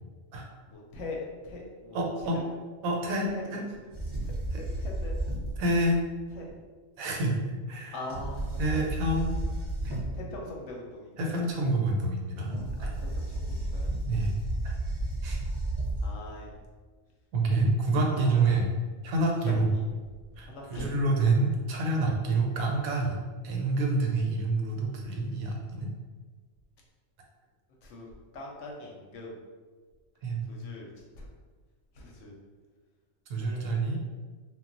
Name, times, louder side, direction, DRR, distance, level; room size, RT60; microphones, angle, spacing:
voice 1, 0.7-2.0 3.3-3.4 4.6-5.1 6.4-6.5 7.9-8.9 10.1-11.4 12.8-13.9 16.0-16.5 18.1-18.2 20.5-20.9 27.8-28.1 28.3-29.3 30.5-30.9 31.2-31.3 32.0-32.3 33.4-33.9, left 2 dB, 70° left, -2 dB, 0.8 m, -42 dB
voice 2, 1.9-2.4 2.8-3.7 4.5-4.6 5.6-6.0 7.0-7.4 7.7-8.0 8.6-9.3 9.8-9.9 11.2-12.5 12.8-12.9 14.1-14.3 14.6-14.7 15.2-15.4 17.3-18.7 19.0-19.7 20.4-25.9 30.2-30.4 33.3-34.0, right 2 dB, 80° right, 0 dB, 1.0 m, -27 dB
sound 1, 3.9-6.0 8.1-10.3 12.5-16.1, right 1 dB, 30° right, 0.5 m, -32 dB
2.3 x 2.1 x 3.7 m, 1.4 s
omnidirectional pair, 1.4 m